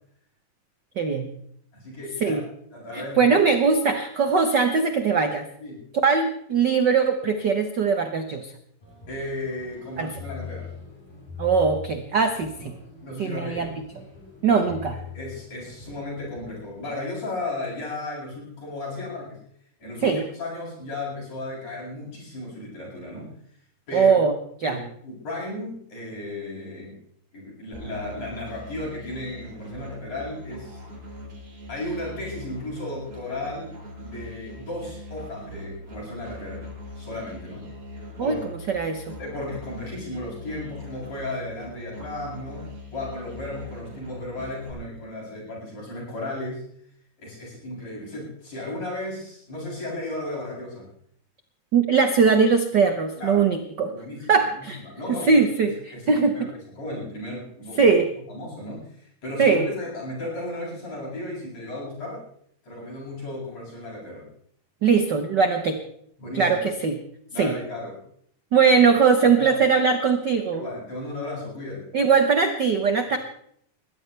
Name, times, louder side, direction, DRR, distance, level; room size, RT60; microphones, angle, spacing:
voice 1, 1.0-1.3 2.2-2.4 2.9-5.5 6.0-8.5 10.0-10.1 11.4-12.7 13.2-13.7 14.4-15.0 20.0-20.2 23.9-24.3 24.6-24.8 38.2-39.0 51.7-53.9 54.3-54.8 55.1-56.3 57.8-58.1 59.4-59.7 64.8-65.8 66.3-67.0 67.4-67.5 68.5-70.6 71.9-73.2, right 5 dB, 75° right, 6 dB, 0.9 m, -20 dB
voice 2, 1.7-2.5 2.7-3.3 5.6-5.8 9.1-10.7 13.0-13.7 14.6-19.4 19.8-23.3 23.9-24.2 24.6-26.9 27.3-30.8 31.7-33.7 34.0-36.7 37.0-37.6 38.2-38.4 39.2-46.6 47.2-50.9 53.2-53.5 53.9-56.5 56.8-57.9 58.3-62.2 62.6-64.3 66.2-66.6 67.3-68.0 69.2-69.5 70.5-71.9 73.1-73.2, left 2 dB, 50° left, -5 dB, 9.1 m, -35 dB
sound 1, 8.8-16.8, left 6 dB, 90° left, 9.9 m, -42 dB
Musical instrument, 27.7-44.7, left 1 dB, 60° right, 8.4 m, -41 dB
21.5 x 16.5 x 3.4 m, 0.68 s
omnidirectional pair, 3.8 m